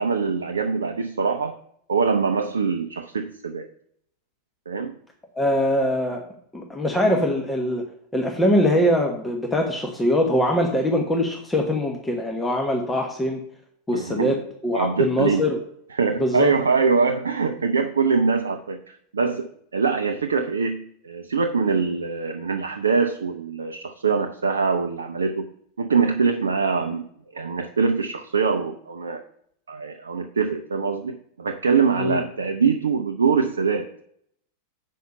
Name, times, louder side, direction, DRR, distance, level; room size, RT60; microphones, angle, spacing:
voice 1, 0.0-1.6 1.9-3.7 4.7-4.9 13.9-14.4 14.7-15.5 15.9-25.5 25.8-27.0 27.3-29.2 29.7-33.9, right 5 dB, 70° right, 6 dB, 0.5 m, -23 dB
voice 2, 5.3-6.2 6.5-7.8 8.1-13.4 13.9-14.4 14.6-15.6 16.2-16.5 32.0-32.2, left 1 dB, 10° left, 2 dB, 1.1 m, -22 dB
7.4 x 5.7 x 5.5 m, 0.69 s
figure-of-eight pair, 90°, 0 cm